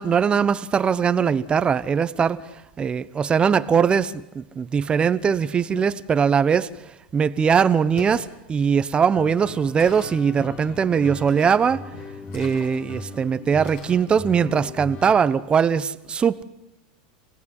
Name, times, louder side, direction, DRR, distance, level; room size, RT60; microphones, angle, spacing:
voice 1, 0.0-6.7 7.1-11.8 12.3-16.4, right 6 dB, 25° right, 1.1 m, -21 dB
sound 1, 7.9-8.3 9.8-10.2 11.3-11.8 12.3-13.0 13.6-14.0, left 5 dB, 55° left, 7.7 m, -42 dB
sound 2, 9.1-15.2, left 4 dB, 40° left, 2.4 m, -39 dB
28.5 x 18.5 x 9.9 m
hypercardioid pair, 115°, 4 cm